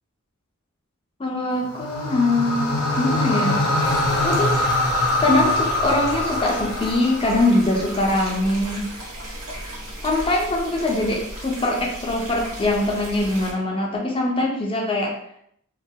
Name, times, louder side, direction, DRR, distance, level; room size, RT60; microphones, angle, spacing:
voice 1, 1.2-3.6 4.2-4.6 5.2-8.9 10.0-15.1, left 2 dB, 25° left, -1 dB, 0.4 m, -22 dB
sound 1, 1.6-7.9, left 1 dB, 90° left, 0.5 m, -23 dB
sound 2, 3.8-13.5, right 1 dB, 90° right, 0.8 m, -35 dB
2.2 x 2.2 x 2.6 m, 0.70 s
head